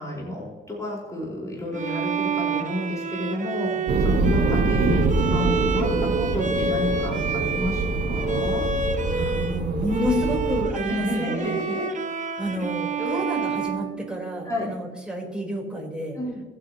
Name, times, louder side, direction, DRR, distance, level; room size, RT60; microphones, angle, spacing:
voice 1, 0.0-5.9 6.1-8.7 10.9-11.8 13.0-13.2 14.4-14.7 16.1-16.4, left 1 dB, 15° left, -4 dB, 5.0 m, -30 dB
Bowed string instrument, 1.7-9.6 9.9-14.7, right 4 dB, 40° right, 1.5 m, -29 dB
sound 1, 3.9-10.6, right 3 dB, 60° right, 2.6 m, -24 dB
voice 2, 9.1-11.6 12.4-16.2, equal, 5° right, -2 dB, 4.6 m, -29 dB
23.0 x 8.7 x 3.1 m, 1.3 s
cardioid pair, 90°, 20 cm